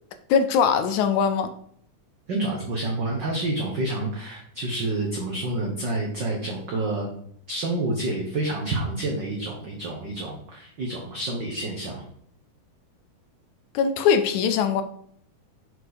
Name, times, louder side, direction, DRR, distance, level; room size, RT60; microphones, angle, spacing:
voice 1, 0.3-1.5 13.7-14.8, left 6 dB, 80° left, 1.9 m, -21 dB
voice 2, 2.3-7.1 7.5-12.0, right 2 dB, 85° right, 0.9 m, -28 dB
6.7 x 4.7 x 4.0 m
omnidirectional pair, 3.7 m